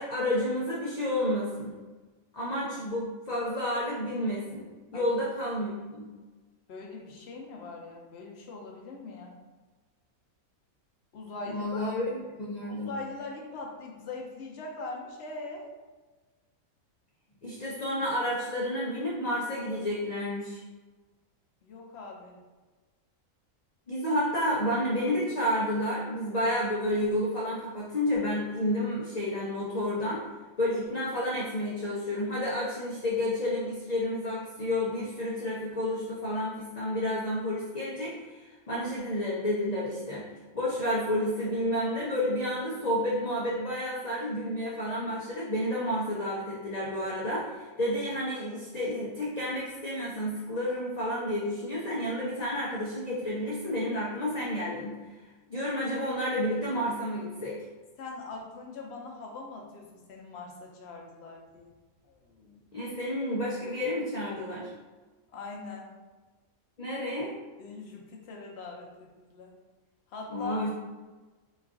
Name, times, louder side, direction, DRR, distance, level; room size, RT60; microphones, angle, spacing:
voice 1, 0.0-1.7 2.3-4.6 4.9-6.1 11.5-12.1 12.4-12.9 17.4-20.6 23.9-30.2 30.6-40.3 40.5-54.9 55.5-57.6 62.7-64.7 66.8-67.3 70.3-70.7, left 1 dB, 85° left, -6 dB, 0.3 m, -30 dB
voice 2, 6.7-9.4 11.1-11.9 12.7-15.7 21.6-22.4 58.0-61.7 62.0-62.6 65.3-65.9 67.6-69.5 70.1-70.6, left 3 dB, 65° left, 0 dB, 0.7 m, -42 dB
3.1 x 2.3 x 3.5 m, 1.3 s
omnidirectional pair, 1.5 m